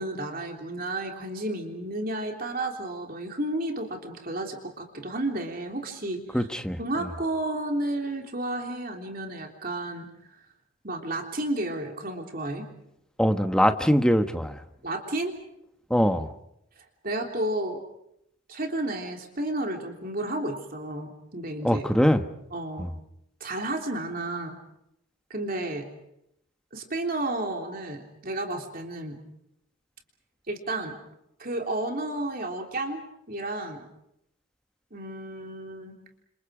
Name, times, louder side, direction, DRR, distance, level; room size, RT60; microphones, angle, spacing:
voice 1, 0.0-6.5 6.8-10.1 10.8-12.6 14.8-15.3 16.8-17.8 18.5-21.8 22.5-22.9 23.4-24.6 25.3-25.9 26.7-29.2 30.5-31.0 31.4-33.9 34.9-35.9, right 1 dB, 45° right, 3 dB, 3.3 m, -32 dB
voice 2, 6.3-6.8 13.2-14.5 15.9-16.3 21.6-22.2 22.8-22.9, equal, 5° left, 8 dB, 1.2 m, -22 dB
30.0 x 28.0 x 5.0 m, 0.78 s
head